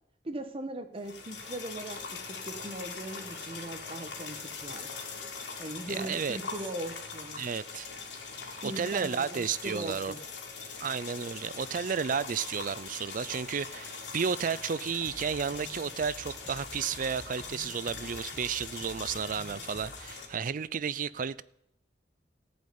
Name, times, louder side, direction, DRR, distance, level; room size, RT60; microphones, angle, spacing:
voice 1, 0.2-2.2 2.4-4.9 5.6-7.4 8.6-10.2, right 1 dB, 35° right, 1.0 m, -39 dB
sound 1, 1.0-20.3, left 4 dB, 80° left, 2.6 m, -42 dB
voice 2, 5.9-6.4 7.4-7.9 8.6-10.1 10.8-21.4, right 6 dB, 50° right, 0.4 m, -32 dB
sound 2, 15.0-20.0, equal, 10° left, 1.3 m, -50 dB
14.5 x 5.3 x 9.4 m
head